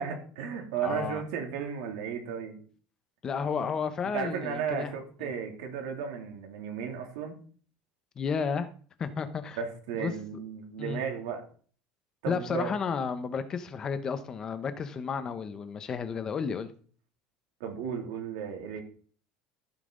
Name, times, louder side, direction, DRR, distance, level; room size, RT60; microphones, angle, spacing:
voice 1, 0.0-2.6 4.1-7.4 9.6-11.5 12.2-12.7 17.6-18.8, right 7 dB, 90° right, 3 dB, 2.8 m, -34 dB
voice 2, 0.8-1.2 3.2-4.9 5.2-5.3 8.2-8.7 9.0-9.6 10.0-10.1 10.8-11.0 12.3-16.7, left 6 dB, 30° left, 11 dB, 0.9 m, -32 dB
15.0 x 5.8 x 3.9 m, 0.43 s
cardioid pair, 150°, 2 cm